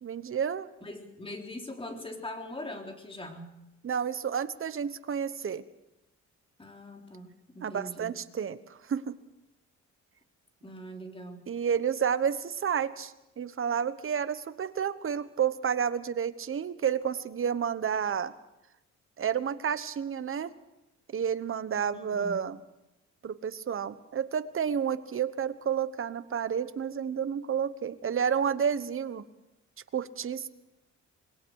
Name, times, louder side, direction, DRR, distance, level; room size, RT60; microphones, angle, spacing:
voice 1, 0.0-0.7 3.8-5.6 7.6-8.6 8.9-9.1 11.5-18.3 19.2-20.5 21.1-22.6 23.2-29.2 29.9-30.5, right 7 dB, 45° right, 13 dB, 1.2 m, -30 dB
voice 2, 0.8-3.5 6.6-8.1 10.6-11.5 21.9-22.5, left 1 dB, 20° left, 2 dB, 3.7 m, -42 dB
26.0 x 20.5 x 4.8 m, 0.93 s
cardioid pair, 90°, 30 cm